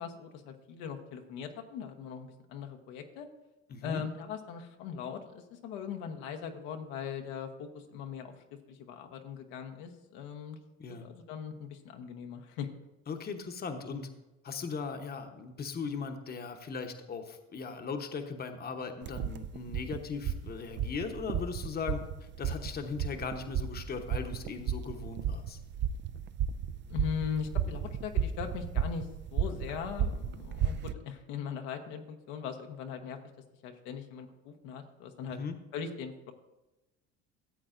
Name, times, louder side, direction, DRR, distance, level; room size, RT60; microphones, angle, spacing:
voice 1, 0.0-3.3 3.8-8.3 8.7-10.6 10.9-12.7 26.9-33.2 33.6-35.4 35.7-36.3, left 7 dB, 80° left, 5 dB, 1.0 m, -40 dB
voice 2, 3.7-4.0 10.8-11.1 13.1-14.1 14.4-25.6 35.4-35.5, left 5 dB, 30° left, 6 dB, 0.9 m, -38 dB
sound 1, 19.0-30.9, right 8 dB, 35° right, 0.4 m, -34 dB
13.5 x 7.7 x 2.5 m, 1.0 s
supercardioid pair, 95°, 31 cm